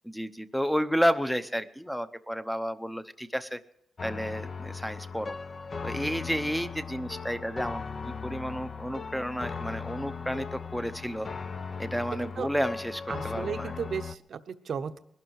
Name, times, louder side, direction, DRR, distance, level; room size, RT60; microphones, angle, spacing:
voice 1, 0.0-3.6 4.0-5.4 5.8-11.3 11.8-13.8, equal, ahead, 12 dB, 0.7 m, -31 dB
sound 1, 4.0-14.2, left 5 dB, 35° left, 0.6 m, -38 dB
voice 2, 13.1-15.0, right 6 dB, 55° right, 10 dB, 0.9 m, -35 dB
21.0 x 12.0 x 4.7 m, 0.75 s
wide cardioid pair, 145°, 0 cm